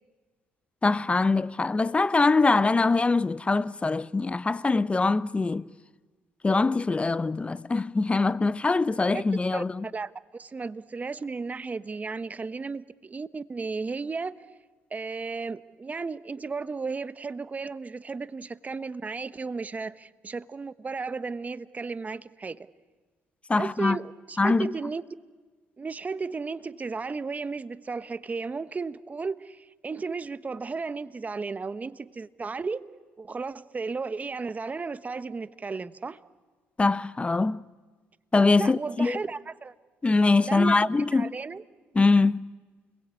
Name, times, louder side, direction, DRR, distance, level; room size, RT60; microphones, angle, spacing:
voice 1, 0.8-5.7 6.4-9.9 23.5-24.0 24.4-24.7 36.8-37.6 38.3-39.2 40.0-41.3 41.9-42.5, left 3 dB, 20° left, 0.8 m, -23 dB
voice 2, 9.5-14.4 14.9-22.7 23.6-25.0 25.8-32.8 33.2-36.2 38.6-39.7 40.5-41.6, right 4 dB, 30° right, 1.1 m, -34 dB
29.0 x 22.0 x 8.5 m
supercardioid pair, 65°, 5 cm